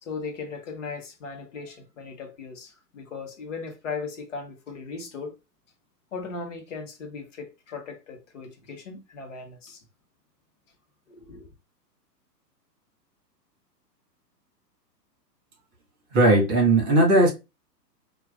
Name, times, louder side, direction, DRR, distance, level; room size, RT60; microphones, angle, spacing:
voice 1, 0.0-5.4 6.1-9.8 11.1-11.5, left 4 dB, 45° left, 0.9 m, -38 dB
voice 2, 16.1-17.3, right 2 dB, 40° right, 1.6 m, -18 dB
4.3 x 2.4 x 2.4 m
figure-of-eight pair, 115°, 50 cm